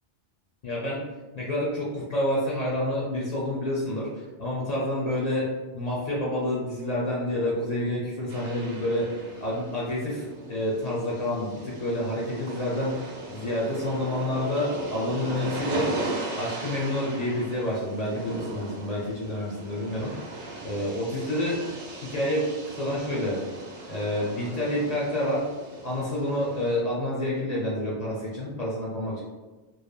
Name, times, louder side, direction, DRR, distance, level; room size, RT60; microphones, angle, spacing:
voice 1, 0.6-1.0 1.3-15.9 16.4-21.6 21.9-23.4 23.9-25.4 25.8-29.2, left 1 dB, 50° left, -5 dB, 0.5 m, -28 dB
sound 1, 8.3-26.8, right 2 dB, 85° right, 1.0 m, -38 dB
3.1 x 2.0 x 2.3 m, 1.2 s
omnidirectional pair, 1.2 m